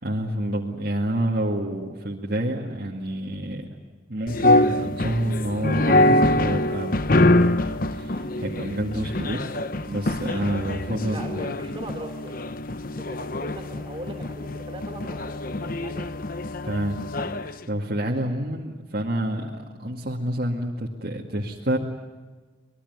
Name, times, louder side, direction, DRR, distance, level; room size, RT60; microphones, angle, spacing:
voice 1, 0.0-3.8 4.1-6.9 7.3-9.4 9.9-11.4 16.6-17.0 17.4-21.8, right 1 dB, 50° right, -2 dB, 2.1 m, -28 dB
sound 1, 4.3-17.6, left 1 dB, 45° left, 0.9 m, -24 dB
voice 2, 11.1-12.5 13.0-16.2, right 1 dB, 25° right, 4 dB, 3.6 m, -40 dB
25.0 x 21.0 x 9.6 m, 1.3 s
head